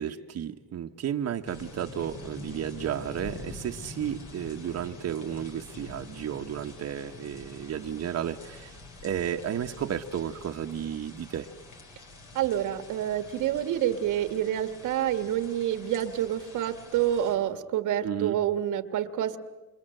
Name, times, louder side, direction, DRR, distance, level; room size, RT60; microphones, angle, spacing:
voice 1, 0.0-8.8 9.0-11.5 18.0-18.4, right 9 dB, 55° right, 4 dB, 1.1 m, -33 dB
sound 1, 1.4-17.4, left 3 dB, 75° left, 5.5 m, -46 dB
voice 2, 12.3-19.4, right 11 dB, 90° right, 10 dB, 1.6 m, -28 dB
28.0 x 26.5 x 7.8 m, 1.2 s
cardioid pair, 90°, 30 cm